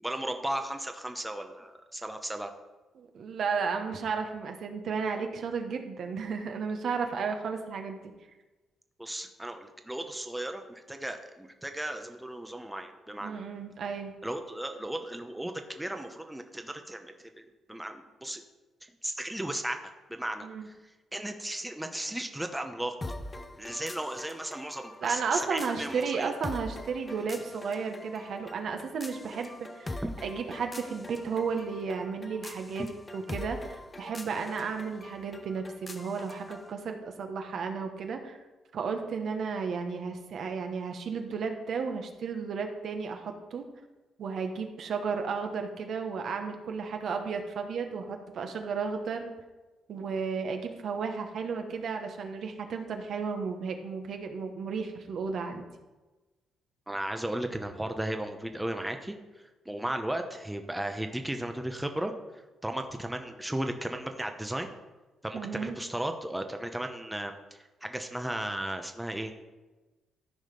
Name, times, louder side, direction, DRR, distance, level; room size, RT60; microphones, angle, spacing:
voice 1, 0.0-2.5 9.0-13.4 14.2-18.4 18.8-23.0 23.6-26.3 30.0-30.1 32.8-32.9 56.9-59.2 59.7-64.7 65.2-69.4, right 1 dB, 5° right, 5 dB, 0.9 m, -35 dB
voice 2, 2.9-8.1 13.2-14.2 20.4-20.6 25.0-29.5 29.7-32.8 33.1-38.4 38.7-43.6 44.2-49.3 49.9-55.6 65.3-65.7, right 5 dB, 65° right, 5 dB, 1.3 m, -33 dB
sound 1, 23.0-36.7, left 2 dB, 20° left, 0.9 m, -43 dB
13.0 x 4.9 x 5.3 m, 1.2 s
cardioid pair, 90°, 0 cm